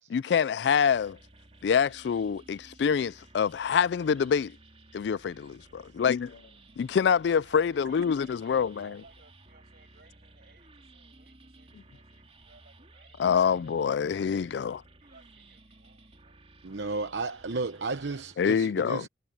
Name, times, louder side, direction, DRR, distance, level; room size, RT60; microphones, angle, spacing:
voice 1, 0.1-1.2 1.6-4.5 4.9-6.3 6.8-8.9 13.2-14.8 18.4-19.0, left 7 dB, 65° left, 0.3 m, -26 dB
sound 1, 0.9-18.4, right 2 dB, 35° right, 3.1 m, -56 dB
voice 2, 7.4-16.4, right 3 dB, 60° right, 7.8 m, -60 dB
voice 3, 16.6-19.1, right 3 dB, 80° right, 0.9 m, -33 dB
head